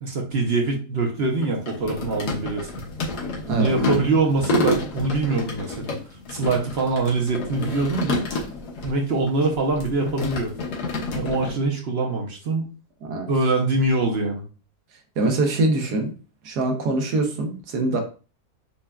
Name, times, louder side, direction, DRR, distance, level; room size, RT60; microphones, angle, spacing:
voice 1, 0.0-2.7 3.5-6.0 6.3-8.2 8.8-10.5 11.1-12.6 13.3-14.4, right 3 dB, 50° right, 2 dB, 0.8 m, -23 dB
sound 1, 1.2-8.9 9.2-11.5, left 2 dB, 75° left, 1.5 m, -29 dB
voice 2, 3.5-3.8 13.0-13.3 15.2-16.1 16.4-18.0, right 2 dB, 80° right, 4 dB, 1.4 m, -23 dB
6.7 x 2.3 x 2.3 m, 0.35 s
omnidirectional pair, 1.7 m